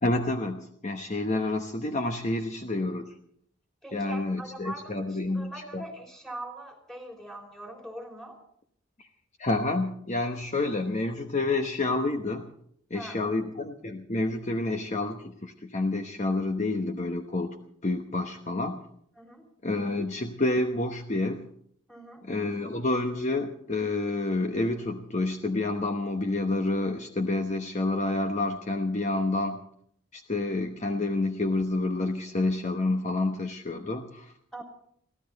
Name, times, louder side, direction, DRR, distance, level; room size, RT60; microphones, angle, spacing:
voice 1, 0.0-3.1 3.9-5.8 9.0-9.1 9.4-12.5 12.9-17.6 17.8-18.8 19.6-21.5 22.2-29.6 30.1-34.3, left 2 dB, 40° left, 5 dB, 1.0 m, -29 dB
voice 2, 3.8-8.4 12.9-13.4 19.2-19.5 21.9-22.2 34.5-34.6, right 1 dB, 5° left, 2 dB, 3.4 m, -42 dB
23.0 x 15.5 x 4.1 m, 0.67 s
head